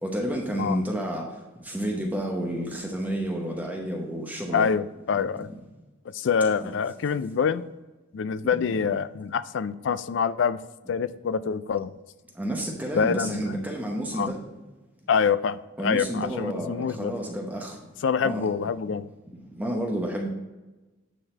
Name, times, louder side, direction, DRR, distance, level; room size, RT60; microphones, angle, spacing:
voice 1, 0.0-1.3 1.6-4.7 5.3-5.5 6.6-6.7 8.4-8.9 12.4-14.4 15.8-17.7 18.2-18.5 19.5-20.3, right 1 dB, 10° right, 0 dB, 0.8 m, -30 dB
voice 2, 4.5-5.5 6.1-7.6 8.1-10.6 10.9-11.9 12.9-13.5 14.2-14.3 15.1-17.1 18.0-19.1, left 6 dB, 60° left, 15 dB, 0.3 m, -26 dB
9.1 x 4.0 x 4.2 m, 1.1 s
head